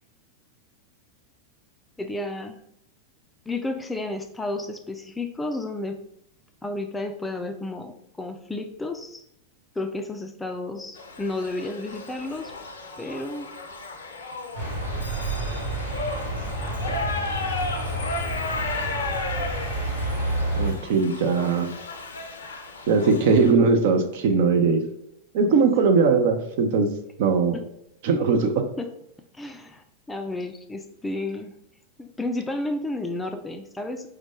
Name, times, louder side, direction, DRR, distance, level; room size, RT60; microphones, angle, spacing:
voice 1, 2.0-2.6 3.5-6.0 6.6-9.2 9.8-12.5 13.0-13.5 16.9-17.0 27.5-27.6 28.8-28.9 29.3-31.5 32.0-34.1, left 2 dB, 10° left, 5 dB, 0.4 m, -32 dB
Shout / Livestock farm animals working animals, 11.0-23.5, left 3 dB, 65° left, 0.5 m, -34 dB
sound 1, 14.5-20.7, right 1 dB, 75° right, 1.2 m, -29 dB
voice 2, 20.6-21.8 22.9-24.8 25.3-26.9 27.2-27.6 28.0-28.7, right 4 dB, 50° right, 6 dB, 0.5 m, -20 dB
4.7 x 2.2 x 3.6 m, 0.77 s
figure-of-eight pair, 90°, 0 cm